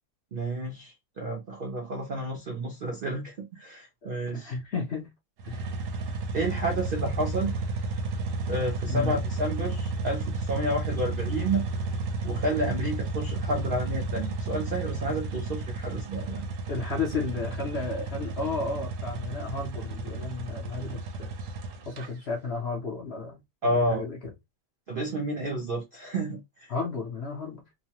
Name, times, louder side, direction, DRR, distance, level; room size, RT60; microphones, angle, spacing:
voice 1, 0.3-4.5 6.3-7.5 8.5-11.7 12.2-16.5 23.6-24.0 24.9-26.7, right 1 dB, 85° right, 0.4 m, -30 dB
voice 2, 4.3-5.1 5.4-5.7 8.9-9.2 16.7-21.4 21.9-23.4 23.7-24.2 26.7-27.7, left 4 dB, 55° left, 0.7 m, -33 dB
sound 1, 5.4-22.1, right 3 dB, 65° right, 0.9 m, -32 dB
3.0 x 2.1 x 2.8 m
omnidirectional pair, 1.8 m